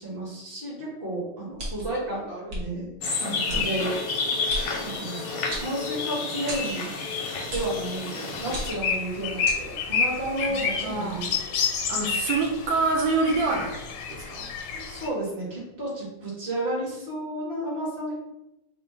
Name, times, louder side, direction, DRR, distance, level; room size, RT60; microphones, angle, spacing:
voice 1, 0.0-2.9 3.5-3.9 4.8-6.9 7.5-11.6 14.7-18.2, right 1 dB, 30° right, -5 dB, 1.4 m, -32 dB
sound 1, 1.6-2.0 2.5-2.6 3.5-3.6 4.5-4.7 5.5-6.1 6.5-6.7 7.5-7.8 8.5-8.9 9.4-9.6, equal, 60° right, 1.4 m, -33 dB
sound 2, 3.0-8.7, left 4 dB, 65° left, 0.9 m, -30 dB
voice 2, 3.2-3.7 10.8-11.3 11.9-14.5, right 3 dB, 85° right, 0 dB, 1.4 m, -27 dB
sound 3, 8.3-15.1, left 6 dB, 85° left, 1.3 m, -29 dB
3.7 x 2.2 x 4.1 m, 0.92 s
omnidirectional pair, 2.0 m